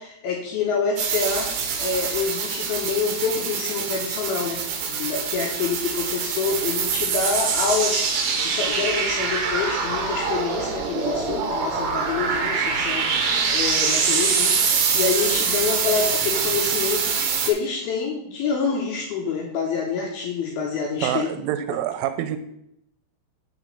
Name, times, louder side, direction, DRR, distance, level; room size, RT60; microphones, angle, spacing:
voice 1, 0.0-1.5 1.8-4.6 4.9-8.1 8.3-14.7 14.9-17.1 17.4-21.3, left 5 dB, 80° left, 0 dB, 2.1 m, -27 dB
sound 1, 1.0-17.5, right 5 dB, 70° right, 2.7 m, -24 dB
voice 2, 21.0-22.4, right 11 dB, 90° right, 10 dB, 3.1 m, -26 dB
6.8 x 5.1 x 6.6 m, 0.78 s
omnidirectional pair, 5.6 m